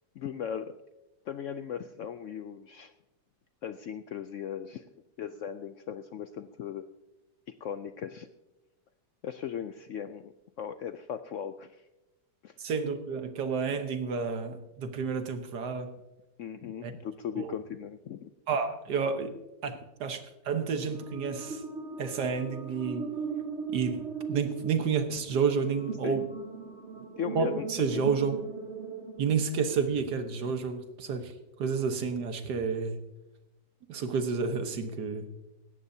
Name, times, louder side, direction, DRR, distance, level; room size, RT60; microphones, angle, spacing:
voice 1, 0.2-0.8 1.3-2.9 3.6-4.9 5.2-6.8 7.6-8.3 9.2-11.9 12.4-12.6 16.4-18.3 26.0-26.2 27.2-28.1, left 8 dB, 70° left, 10 dB, 0.7 m, -38 dB
voice 2, 12.6-15.9 16.8-16.9 17.4-17.5 18.5-19.3 19.6-21.6 22.0-23.1 23.7-24.0 24.3-26.3 27.4-28.4 29.2-31.3 31.6-33.0 33.9-35.3, right 5 dB, 80° right, 7 dB, 1.7 m, -30 dB
sound 1, 20.8-30.1, right 5 dB, 45° right, 1.4 m, -39 dB
18.5 x 16.0 x 2.7 m, 1.0 s
omnidirectional pair, 1.8 m